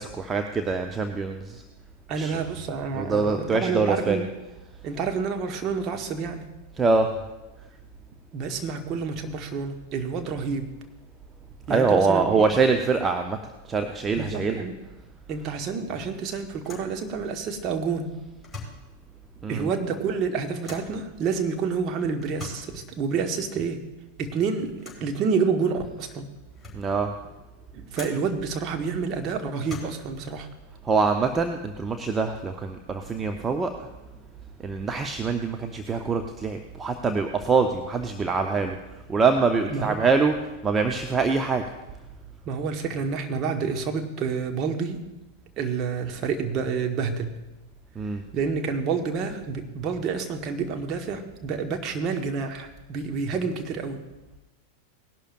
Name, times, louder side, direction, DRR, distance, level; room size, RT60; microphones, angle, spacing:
voice 1, 0.0-1.6 2.2-2.4 3.0-4.2 6.8-7.1 11.7-13.4 13.6-14.6 19.4-19.7 26.7-27.1 30.8-33.9 34.6-38.8 39.1-40.4 40.6-41.6 48.0-48.2, right 4 dB, 20° right, 5 dB, 0.7 m, -24 dB
voice 2, 2.1-4.3 4.8-6.5 8.3-10.7 11.7-12.4 14.2-14.8 15.3-18.2 19.5-23.8 24.2-26.3 27.7-30.5 39.7-40.0 42.4-45.0 45.6-47.3 48.3-54.0, right 5 dB, 35° right, 4 dB, 1.3 m, -28 dB
sound 1, 16.6-17.0 18.3-18.9 20.6-21.0 22.2-22.7 24.8-25.1 25.9-26.0 26.4-26.9 27.9-28.3 29.5-30.2, left 3 dB, 5° left, 4.1 m, -42 dB
19.0 x 11.5 x 2.5 m, 1.1 s
figure-of-eight pair, 90°, 0 cm